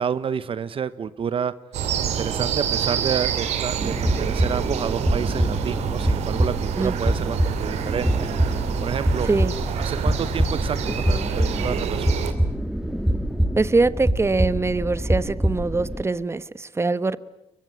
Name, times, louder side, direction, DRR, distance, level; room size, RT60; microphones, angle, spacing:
voice 1, 0.0-1.5 2.0-8.3 8.8-9.3 9.8-12.1, right 7 dB, 55° right, 15 dB, 1.0 m, -29 dB
sound 1, 1.7-12.3, right 8 dB, 85° right, 2.6 m, -27 dB
sound 2, 3.8-16.0, equal, ahead, 2.3 m, -25 dB
voice 2, 9.2-9.5 13.6-17.2, right 3 dB, 25° right, 15 dB, 1.2 m, -23 dB
23.5 x 21.0 x 9.7 m, 0.91 s
supercardioid pair, 60°, 11 cm